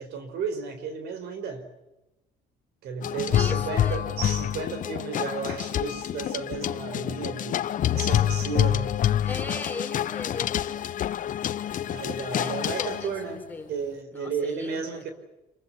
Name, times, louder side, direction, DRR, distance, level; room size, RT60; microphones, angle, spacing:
voice 1, 0.0-1.7 2.8-9.0 11.8-13.4 13.7-15.1, right 5 dB, 75° right, 4.7 m, -33 dB
sound 1, 3.0-13.2, left 11 dB, 50° left, 0.9 m, -27 dB
voice 2, 3.3-4.0 9.2-11.1 12.4-13.7 14.1-15.1, left 3 dB, 10° left, 4.3 m, -38 dB
27.5 x 23.0 x 7.1 m
cardioid pair, 110°, 17 cm